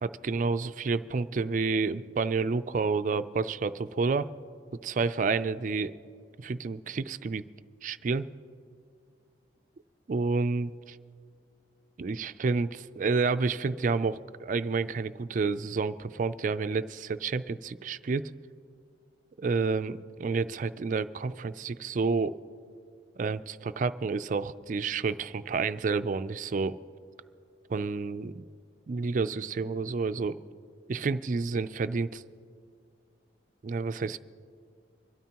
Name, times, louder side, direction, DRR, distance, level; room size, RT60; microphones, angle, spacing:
voice 1, 0.0-4.3 4.8-5.9 6.4-7.4 7.8-8.3 10.1-11.0 12.0-18.2 19.4-22.3 23.2-26.8 27.7-28.5 28.9-30.4 30.9-32.2 33.6-34.2, right 4 dB, 45° right, 12 dB, 0.4 m, -29 dB
25.0 x 12.5 x 2.9 m, 2.2 s
head